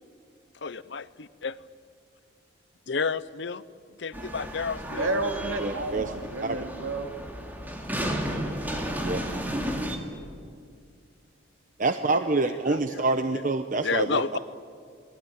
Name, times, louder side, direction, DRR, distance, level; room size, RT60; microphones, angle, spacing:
voice 1, 0.6-1.6 2.9-3.6 4.0-5.1 12.5-13.1 13.3-13.4 13.8-14.4, left 5 dB, 60° left, 17 dB, 0.7 m, -31 dB
sound 1, 4.1-10.0, equal, 10° right, 2.7 m, -33 dB
voice 2, 4.9-7.1, right 2 dB, 85° right, 5 dB, 2.6 m, -31 dB
voice 3, 5.6-6.1 6.4-6.6 9.0-9.2 11.8-14.2, right 3 dB, 40° right, 8 dB, 0.9 m, -26 dB
voice 4, 7.7-9.7 14.3-14.4, right 2 dB, 65° right, 3 dB, 6.2 m, -44 dB
28.5 x 21.5 x 9.2 m, 2.3 s
head